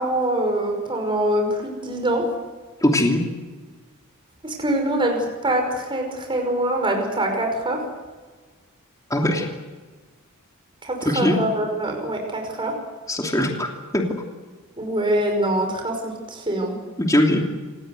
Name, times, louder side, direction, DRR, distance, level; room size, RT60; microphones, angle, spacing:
voice 1, 0.0-2.3 4.4-7.8 10.8-12.7 14.8-16.8, right 1 dB, 25° right, 3 dB, 5.5 m, -24 dB
voice 2, 2.8-3.2 9.1-9.5 11.0-11.3 13.1-13.7 13.9-14.0 17.0-17.4, left 1 dB, 15° left, 1 dB, 3.1 m, -20 dB
28.0 x 19.5 x 8.1 m, 1.3 s
head